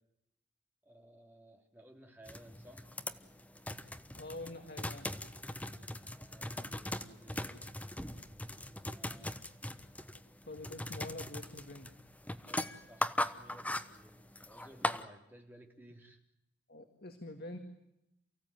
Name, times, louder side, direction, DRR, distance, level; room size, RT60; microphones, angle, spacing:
voice 1, 0.8-2.9 5.8-7.7 8.5-9.4 12.4-16.2, right 1 dB, 10° right, 2 dB, 3.3 m, -58 dB
sound 1, 2.3-15.0, left 1 dB, 5° left, 1.0 m, -40 dB
voice 2, 4.2-5.1 10.5-11.9 16.7-17.6, left 2 dB, 50° left, 6 dB, 2.2 m, -46 dB
29.0 x 16.0 x 9.2 m, 0.83 s
head